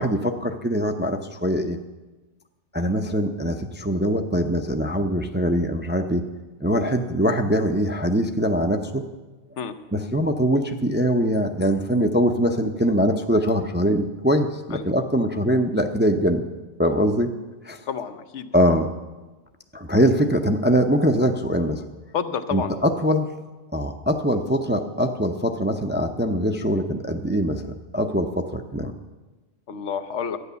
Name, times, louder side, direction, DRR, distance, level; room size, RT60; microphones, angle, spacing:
voice 1, 0.0-1.8 2.7-6.3 6.6-9.1 9.9-16.5 16.8-17.3 17.6-17.8 18.5-18.9 19.7-21.8 22.5-23.3 23.7-28.9, equal, 15° right, 5 dB, 0.4 m, -22 dB
voice 2, 17.9-18.5 22.1-22.7 29.7-30.4, left 7 dB, 85° left, 10 dB, 1.1 m, -29 dB
12.5 x 9.3 x 6.8 m, 1.2 s
omnidirectional pair, 1.2 m